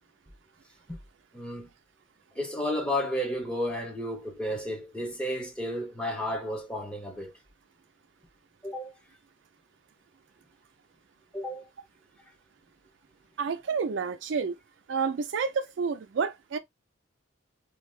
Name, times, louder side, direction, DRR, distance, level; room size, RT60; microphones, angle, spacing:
voice 1, 1.3-1.7 2.4-7.3 8.6-8.9 11.3-11.7, equal, 5° left, 0.7 m, -32 dB
voice 2, 13.4-14.6 14.9-16.6, right 5 dB, 65° right, 0.4 m, -29 dB
2.7 x 2.3 x 3.1 m
head